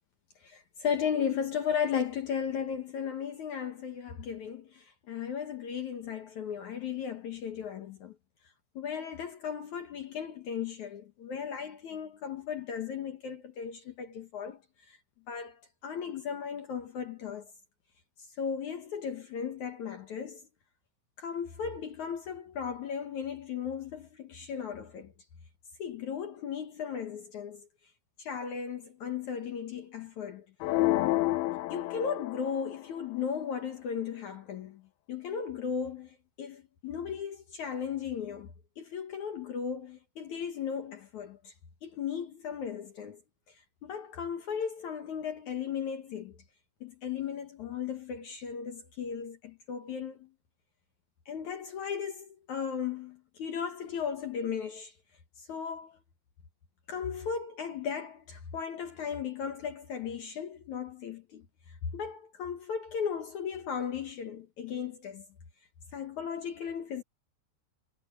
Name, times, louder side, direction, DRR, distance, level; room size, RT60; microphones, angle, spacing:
voice 1, 0.4-8.1 8.8-14.6 14.9-15.0 15.3-17.5 18.4-20.4 21.2-25.1 25.8-27.7 28.2-30.4 31.7-34.8 35.1-41.5 41.8-43.2 43.8-46.4 46.8-50.3 51.3-54.9 55.4-56.0 56.9-61.5 61.9-65.3 65.9-67.0, left 7 dB, 60° left, 2.1 m, -36 dB
sound 1, 30.6-32.7, left 17 dB, 80° left, 2.2 m, -29 dB
omnidirectional pair, 5.1 m